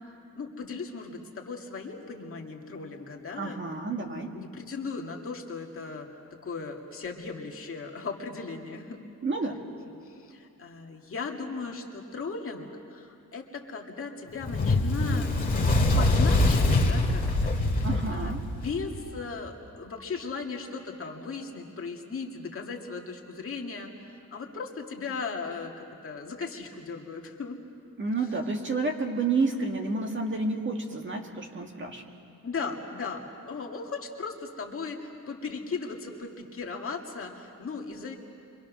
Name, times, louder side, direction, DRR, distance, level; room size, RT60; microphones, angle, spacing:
voice 1, 0.3-3.6 4.0-6.1 6.4-9.0 10.0-27.6 32.4-38.1, left 4 dB, 40° left, 1 dB, 2.1 m, -37 dB
voice 2, 3.4-4.3 9.2-9.6 17.8-18.4 28.0-32.0, right 3 dB, 35° right, 3 dB, 1.9 m, -30 dB
Fire, 14.4-19.0, left 2 dB, 25° left, 2.2 m, -24 dB
29.5 x 24.5 x 6.2 m, 2.6 s
wide cardioid pair, 165°, 33 cm